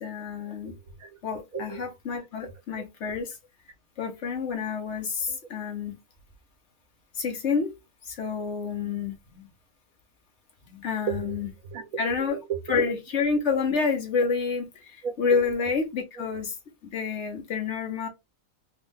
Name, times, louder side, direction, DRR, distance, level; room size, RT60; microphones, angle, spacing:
voice 1, 0.0-0.7 1.2-3.3 4.0-5.9 7.2-7.7 8.1-9.5 10.7-11.5 12.0-12.4 12.7-16.5 16.9-18.1, left 5 dB, 55° left, 1.2 m, -28 dB
voice 2, 0.7-1.1 1.5-1.9 2.4-2.5 5.3-5.4 11.1-12.8 15.0-15.5 16.2-16.3, right 7 dB, 80° right, 1.5 m, -35 dB
3.6 x 2.5 x 3.8 m
omnidirectional pair, 1.5 m